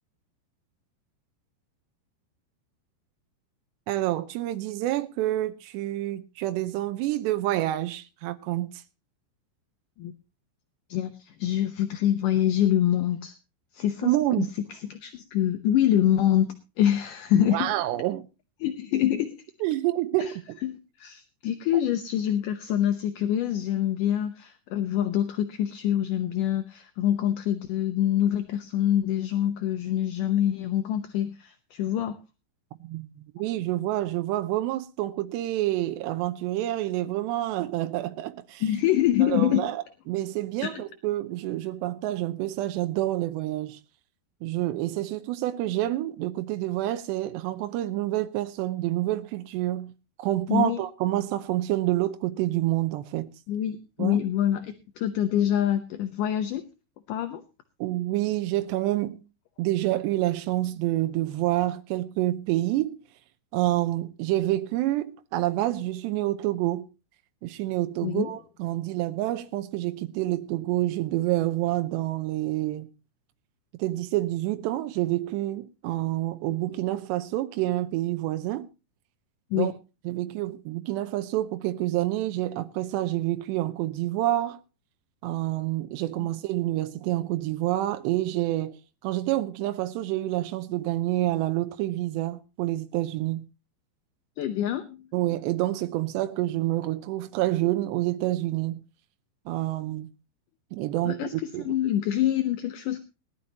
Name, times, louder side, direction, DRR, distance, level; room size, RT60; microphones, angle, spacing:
voice 1, 3.9-8.8 14.0-14.5 17.4-18.2 19.6-20.6 32.8-38.6 39.2-43.8 44.4-49.9 50.2-53.3 54.0-54.2 57.8-59.2 59.6-63.0 63.5-66.9 67.4-72.9 73.8-78.7 79.5-79.7 80.1-84.6 85.2-93.4 95.1-98.8 99.5-100.1 100.7-101.7, right 15 dB, 85° right, 3.0 m, -28 dB
voice 2, 10.9-13.4 13.7-17.7 18.6-19.4 20.2-20.3 20.6-32.2 38.6-39.7 40.6-40.8 50.5-50.8 53.5-56.6 57.1-57.4 68.0-68.3 79.5-79.7 94.4-95.0 101.0-101.3 101.6-103.0, left 11 dB, 75° left, 2.0 m, -25 dB
20.0 x 12.0 x 2.9 m
omnidirectional pair, 4.8 m